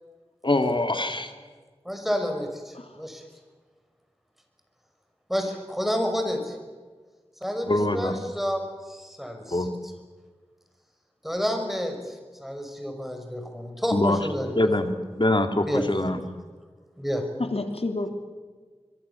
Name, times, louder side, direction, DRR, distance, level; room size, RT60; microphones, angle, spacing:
voice 1, 0.4-1.3 7.7-8.1 9.5-9.7 13.9-14.2 14.6-14.9 15.2-16.2, left 1 dB, 50° left, 6 dB, 2.7 m, -23 dB
voice 2, 1.8-3.2 5.3-6.6 7.4-9.7 11.2-14.7 15.6-15.9 17.0-17.3, equal, ahead, 5 dB, 5.8 m, -30 dB
voice 3, 17.4-18.1, left 2 dB, 70° left, 6 dB, 3.0 m, -29 dB
25.0 x 23.0 x 7.1 m, 1.4 s
wide cardioid pair, 45°, 11 cm